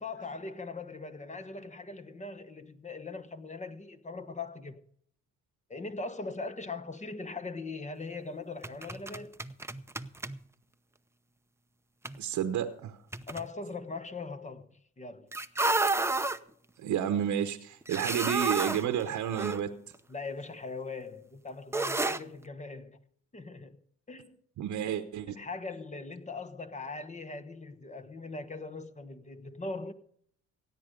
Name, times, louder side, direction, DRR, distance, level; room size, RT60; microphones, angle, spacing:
voice 1, 0.0-4.8 5.7-9.3 13.3-15.3 20.1-23.0 23.3-23.8 24.1-24.4 25.3-29.9, left 3 dB, 25° left, 1.2 m, -40 dB
sound 1, 8.6-10.4 12.1-12.2 13.1-13.5 15.3-16.4 17.8-19.6 19.9-20.0 21.7-22.2, right 2 dB, 10° right, 0.7 m, -31 dB
voice 2, 12.2-13.0 16.8-19.7 24.6-25.4, right 9 dB, 75° right, 1.0 m, -31 dB
17.0 x 9.0 x 5.2 m
cardioid pair, 90°, 30 cm